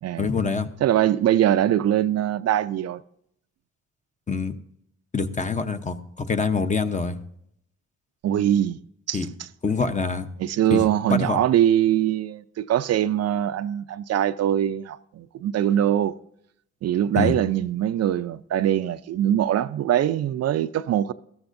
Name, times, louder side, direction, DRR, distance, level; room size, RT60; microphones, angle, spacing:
voice 1, 0.2-0.7 4.3-4.6 5.1-7.2 9.1-9.3 9.6-10.3 10.7-11.4 17.1-17.3, left 4 dB, 25° left, 0.8 m, -25 dB
voice 2, 0.8-3.0 8.2-8.8 9.1-9.5 10.4-16.1 16.8-21.1, right 11 dB, 55° right, 0.5 m, -22 dB
15.0 x 13.0 x 2.6 m
cardioid pair, 90°, 30 cm